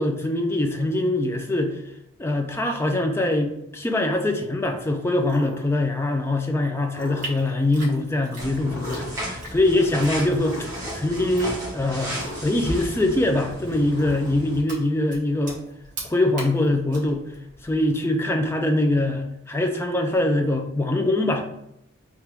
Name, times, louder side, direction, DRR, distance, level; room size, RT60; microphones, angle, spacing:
voice 1, 0.0-1.8 2.2-10.6 10.9-15.6 16.1-17.3 17.6-21.4, left 1 dB, 10° left, 4 dB, 0.3 m, -23 dB
sound 1, 5.3-5.7 6.9-7.6 8.7-9.3 10.4-11.0 12.1-12.8 13.9-14.6, left 1 dB, 75° left, 0.7 m, -38 dB
sound 2, 7.2-18.0, right 2 dB, 40° right, 1.0 m, -43 dB
sound 3, 8.4-14.6, equal, 15° right, 0.9 m, -34 dB
3.4 x 2.4 x 4.4 m, 0.82 s
head